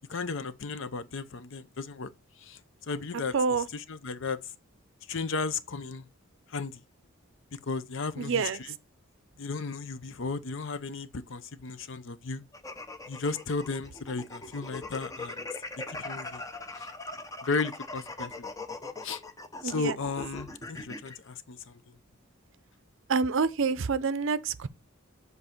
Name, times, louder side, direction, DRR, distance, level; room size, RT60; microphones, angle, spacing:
voice 1, 0.1-2.1 2.4-2.6 2.9-4.4 5.1-6.1 6.5-6.8 7.6-8.7 9.4-12.4 13.1-15.5 15.9-16.4 16.8-16.9 17.4-18.5 19.0-19.2 19.6-21.8, left 4 dB, 60° left, 0.6 m, -34 dB
voice 2, 3.3-3.7 8.2-8.6 19.6-20.0 23.1-24.7, right 5 dB, 60° right, 0.5 m, -27 dB
sound 1, 12.5-21.2, left 2 dB, 15° left, 0.7 m, -40 dB
7.8 x 4.1 x 4.4 m
head